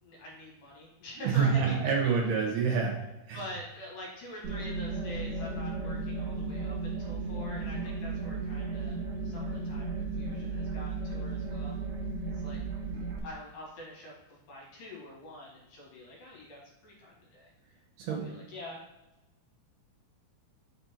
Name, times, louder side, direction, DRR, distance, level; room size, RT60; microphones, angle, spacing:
voice 1, 0.0-1.9 3.3-9.0 9.2-11.7 12.3-12.6 13.2-17.5 18.0-18.8, left 1 dB, 60° left, -4 dB, 2.9 m, -45 dB
voice 2, 1.2-2.9 3.3-3.4 18.0-18.2, right 6 dB, 70° right, -1 dB, 3.0 m, -27 dB
sound 1, 4.4-13.2, right 3 dB, 55° right, 2.3 m, -35 dB
6.3 x 4.4 x 4.2 m, 1.0 s
omnidirectional pair, 4.9 m